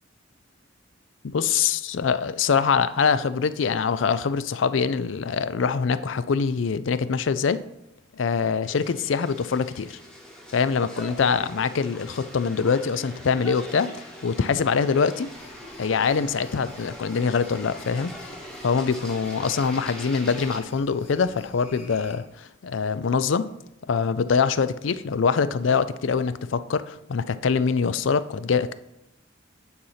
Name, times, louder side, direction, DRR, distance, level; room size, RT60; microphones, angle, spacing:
voice 1, 1.2-7.6 8.1-10.0 10.5-13.9 14.2-15.3 15.8-18.1 18.6-23.5 23.9-28.7, left 5 dB, 70° left, 14 dB, 0.4 m, -24 dB
sound 1, 8.6-20.6, equal, 5° left, 1.1 m, -42 dB
sound 2, 15.2-22.2, left 2 dB, 30° left, 1.5 m, -48 dB
9.4 x 4.2 x 5.7 m, 0.88 s
head